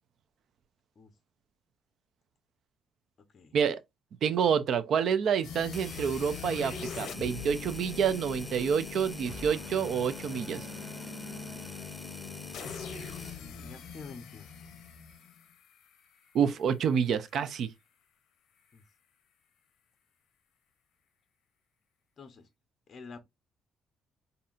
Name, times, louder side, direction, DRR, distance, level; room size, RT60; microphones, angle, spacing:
voice 1, 4.2-10.7 16.3-17.7, right 7 dB, 55° right, 0.4 m, -28 dB
sound 1, 5.4-16.4, left 7 dB, 75° left, 0.6 m, -43 dB
sound 2, 5.7-13.4, left 2 dB, 10° left, 0.4 m, -46 dB
sound 3, 8.6-13.1, right 1 dB, 10° right, 2.6 m, -48 dB
voice 2, 13.4-14.5 18.7-18.8 22.2-22.5 22.9-23.2, left 4 dB, 35° left, 0.8 m, -48 dB
5.5 x 2.7 x 2.4 m
cardioid pair, 155°, 0 cm